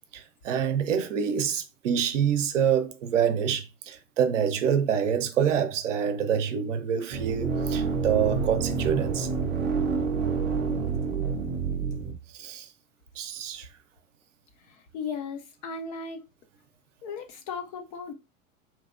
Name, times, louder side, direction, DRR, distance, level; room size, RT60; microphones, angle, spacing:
voice 1, 0.1-9.3 12.3-12.7 13.2-13.7, right 8 dB, 60° right, 0.7 m, -26 dB
sound 1, 7.1-12.1, right 5 dB, 25° right, 0.6 m, -28 dB
voice 2, 14.6-16.2 17.0-18.1, left 5 dB, 30° left, 0.4 m, -36 dB
2.9 x 2.6 x 2.5 m
figure-of-eight pair, 90°, 41 cm